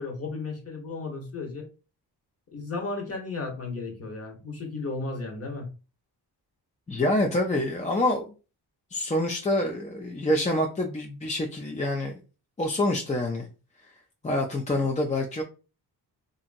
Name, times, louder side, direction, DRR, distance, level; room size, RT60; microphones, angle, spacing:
voice 1, 0.0-1.7 2.5-5.7, left 3 dB, 35° left, 1 dB, 1.1 m, -34 dB
voice 2, 6.9-8.3 8.9-12.1 12.6-13.5 14.2-15.4, left 1 dB, 20° left, 2 dB, 0.4 m, -26 dB
2.8 x 2.6 x 2.5 m, 0.32 s
cardioid pair, 75°, 40 cm